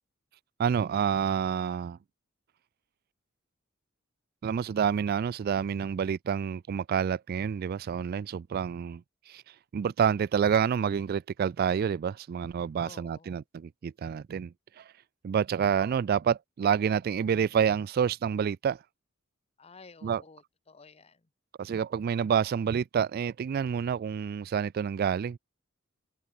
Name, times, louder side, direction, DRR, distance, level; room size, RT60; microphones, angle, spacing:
voice 1, 0.6-2.0 4.4-9.4 9.7-14.8 15.2-18.8 20.0-20.2 21.6-25.4, right 7 dB, 50° right, 0.3 m, -28 dB
voice 2, 12.8-13.4 19.6-21.3, left 4 dB, 30° left, 0.9 m, -53 dB
open air
head